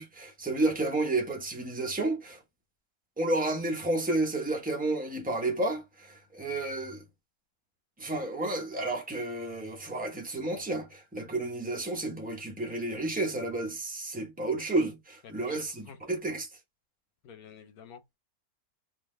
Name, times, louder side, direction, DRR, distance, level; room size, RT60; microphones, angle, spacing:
voice 1, 0.0-2.4 3.2-7.0 8.0-16.5, right 2 dB, 5° right, 0.8 m, -31 dB
voice 2, 15.2-16.2 17.2-18.2, left 7 dB, 85° left, 1.2 m, -50 dB
3.7 x 2.7 x 3.2 m
omnidirectional pair, 1.5 m